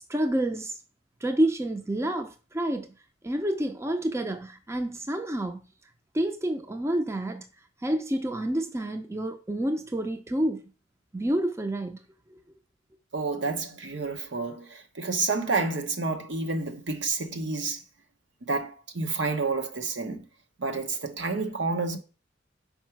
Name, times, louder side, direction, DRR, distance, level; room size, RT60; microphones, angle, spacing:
voice 1, 0.1-0.8 1.2-2.9 3.2-5.6 6.1-7.5 7.8-10.7 11.1-12.0, right 1 dB, 15° right, 0.5 m, -28 dB
voice 2, 13.1-17.8 18.5-20.2 20.6-22.0, right 3 dB, 75° right, 1.1 m, -29 dB
5.4 x 4.7 x 4.5 m
head